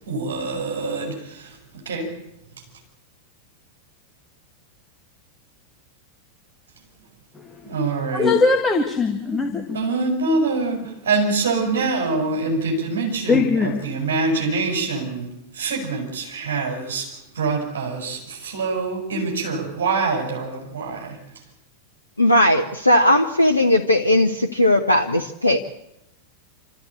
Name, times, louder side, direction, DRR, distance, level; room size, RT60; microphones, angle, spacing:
voice 1, 0.1-1.6 1.8-2.1 7.6-8.3 9.7-21.2, right 3 dB, 60° right, 1 dB, 6.8 m, -25 dB
voice 2, 7.3-7.7 8.1-9.8 13.3-13.8, left 4 dB, 15° left, 2 dB, 2.1 m, -21 dB
voice 3, 22.2-25.7, left 1 dB, 80° left, 4 dB, 1.1 m, -17 dB
27.5 x 14.0 x 8.5 m, 0.85 s
figure-of-eight pair, 90°, 0 cm